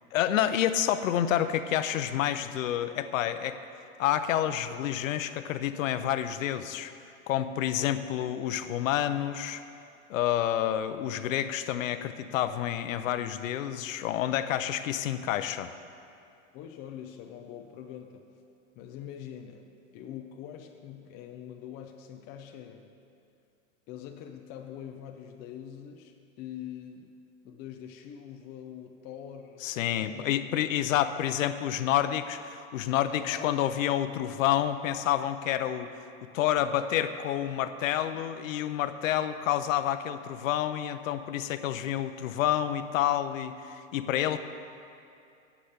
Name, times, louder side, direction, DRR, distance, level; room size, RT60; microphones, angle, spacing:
voice 1, 0.1-3.6 4.0-6.9 7.3-9.6 10.1-15.7 29.6-35.9 36.2-44.4, left 11 dB, 80° left, 10 dB, 0.7 m, -29 dB
voice 2, 16.5-18.3 18.8-22.9 23.9-27.1 27.4-30.4 33.0-34.0 37.8-37.9 44.2-44.4, left 9 dB, 25° left, 4 dB, 0.5 m, -44 dB
10.0 x 7.4 x 8.0 m, 2.5 s
supercardioid pair, 150°, 39 cm